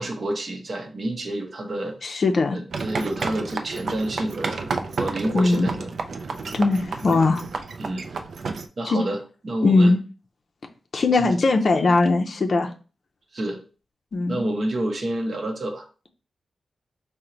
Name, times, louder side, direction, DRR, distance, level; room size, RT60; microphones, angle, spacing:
voice 1, 0.0-2.0 2.5-4.7 5.0-6.0 7.8-8.1 8.8-9.9 11.1-11.3 13.3-13.6 14.3-15.9, right 1 dB, 45° right, 3 dB, 0.8 m, -29 dB
voice 2, 2.0-2.6 5.3-5.7 6.5-7.4 8.8-9.0 9.6-10.0 10.9-12.7 14.1-14.4, left 3 dB, 50° left, 4 dB, 0.5 m, -20 dB
sound 1, 2.7-8.7, right 4 dB, 65° right, 0.3 m, -31 dB
4.4 x 2.1 x 3.8 m, 0.35 s
wide cardioid pair, 150°, 0 cm